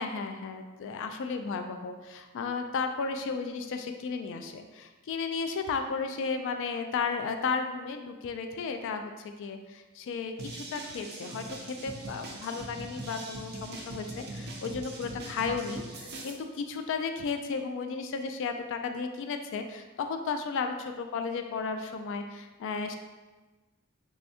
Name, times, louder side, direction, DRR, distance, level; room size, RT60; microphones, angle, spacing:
voice 1, 0.0-23.0, left 5 dB, 60° left, 6 dB, 0.3 m, -34 dB
sound 1, 10.4-16.3, right 2 dB, 50° right, 0.6 m, -42 dB
3.4 x 3.3 x 2.7 m, 1.2 s
head